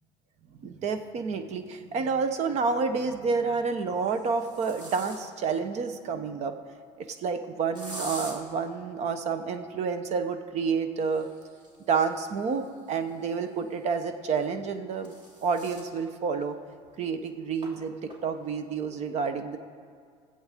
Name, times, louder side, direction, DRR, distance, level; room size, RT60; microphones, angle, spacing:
voice 1, 0.6-6.5 7.0-11.3 11.9-15.1 15.4-16.6 17.0-19.6, right 5 dB, 60° right, 8 dB, 1.0 m, -29 dB
sound 1, 1.4-1.5 2.9-3.3 3.9-5.5 7.7-8.4 10.9-13.6 14.6-15.9 16.4-16.5 16.8-16.9 17.6-17.7 18.1-18.5, right 1 dB, 35° right, 2.8 m, -45 dB
23.0 x 8.0 x 3.7 m, 2.1 s
cardioid pair, 105°, 13 cm